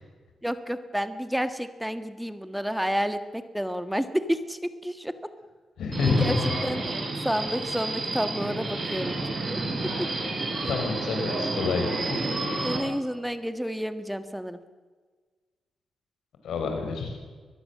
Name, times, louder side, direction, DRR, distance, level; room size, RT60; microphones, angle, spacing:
voice 1, 0.4-5.1 6.0-6.3 6.6-6.8 7.2-9.6 12.6-14.6, equal, 5° right, 10 dB, 1.5 m, -30 dB
voice 2, 5.8-6.5 10.7-12.3 16.4-17.2, left 4 dB, 90° left, 5 dB, 5.9 m, -28 dB
Subway metro underground, 5.9-12.8, right 2 dB, 35° right, 7.4 m, -30 dB
22.0 x 21.0 x 7.6 m, 1.4 s
cardioid pair, 105°, 0 cm